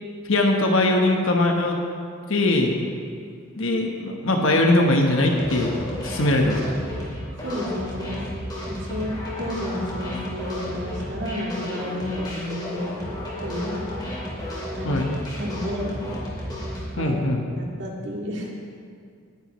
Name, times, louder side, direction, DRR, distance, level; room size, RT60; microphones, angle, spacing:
voice 1, 0.2-1.8 2.3-2.7 3.5-5.7 6.0-6.7 14.8-15.0 17.0-17.4, left 2 dB, 65° left, 1 dB, 1.1 m, -21 dB
sound 1, 5.2-16.8, left 1 dB, 20° left, 2.7 m, -32 dB
voice 2, 7.4-8.2 8.7-9.1 9.4-12.9 13.4-13.9 14.8-15.0 15.4-16.0 17.0-17.2 17.5-18.5, left 1 dB, 55° right, -2 dB, 2.1 m, -31 dB
18.5 x 10.5 x 3.1 m, 2.3 s
head